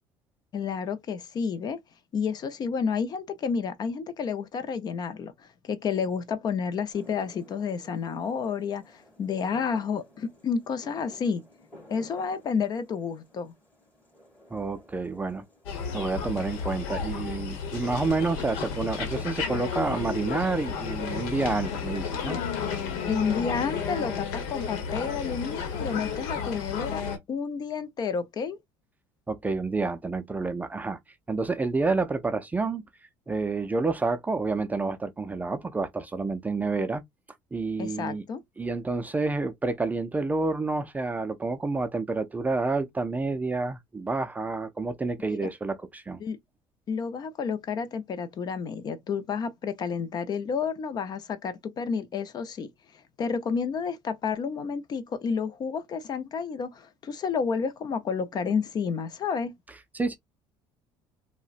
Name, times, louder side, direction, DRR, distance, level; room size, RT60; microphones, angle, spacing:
voice 1, 0.5-1.8 2.1-11.4 11.9-13.5 23.1-27.0 27.3-28.6 37.8-38.4 45.2-45.5 46.2-46.4 46.9-52.7 53.2-59.5, left 6 dB, 40° left, 0.5 m, -30 dB
sound 1, 6.9-21.2, left 1 dB, 15° left, 2.3 m, -54 dB
voice 2, 14.5-15.4 15.9-22.4 29.3-31.0 31.3-32.8 33.3-37.0 37.5-38.2 38.6-46.2 59.9-60.2, right 3 dB, 15° right, 0.4 m, -29 dB
sound 2, 15.7-27.2, left 6 dB, 85° left, 0.9 m, -32 dB
3.6 x 2.1 x 2.4 m
cardioid pair, 110°, 10 cm